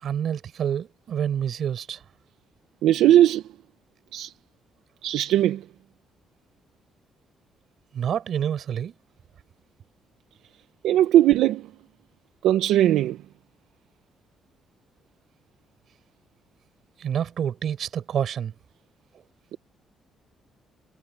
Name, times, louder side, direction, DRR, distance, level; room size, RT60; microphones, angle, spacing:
voice 1, 0.0-2.0 7.9-8.9 17.0-18.5, right 9 dB, 60° right, 8.0 m, -28 dB
voice 2, 2.8-3.4 4.1-4.3 5.0-5.6 10.8-11.7 12.4-13.2, right 12 dB, 85° right, 0.9 m, -19 dB
cardioid pair, 90°, 0 cm